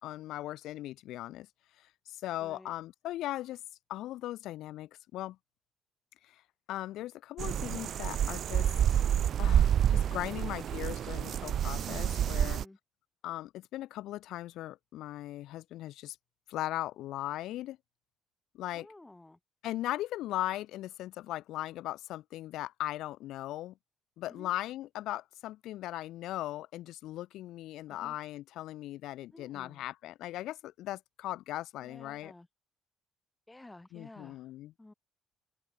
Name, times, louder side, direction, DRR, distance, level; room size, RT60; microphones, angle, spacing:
voice 1, 0.0-1.5 1.8-3.6 3.9-5.4 6.2-6.4 6.7-8.7 9.4-12.6 13.2-16.2 16.5-17.8 18.5-18.9 19.6-23.7 24.2-32.3 33.9-34.7, left 15 dB, 80° left, 4.0 m, -38 dB
voice 2, 2.4-2.7 12.3-12.8 18.7-19.4 24.3-24.5 27.9-28.2 29.3-29.8 31.8-32.5 33.5-34.5 34.8-34.9, left 2 dB, 10° left, 6.0 m, -53 dB
sound 1, 7.4-12.6, right 9 dB, 60° right, 1.0 m, -28 dB
open air
cardioid pair, 95°, 0 cm